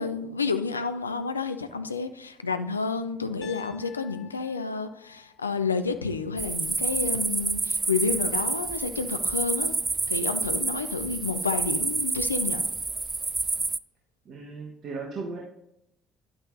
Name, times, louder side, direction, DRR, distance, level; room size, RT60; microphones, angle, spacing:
voice 1, 0.0-9.7 10.1-12.6, left 4 dB, 85° left, 10 dB, 0.4 m, -30 dB
Piano, 3.4-7.5, left 11 dB, 55° left, 1.0 m, -53 dB
sound 1, 6.4-13.8, right 3 dB, 25° right, 0.3 m, -28 dB
voice 2, 14.2-15.4, right 4 dB, 50° right, -1 dB, 1.3 m, -36 dB
10.5 x 8.6 x 2.7 m, 0.81 s
figure-of-eight pair, 50°, 0 cm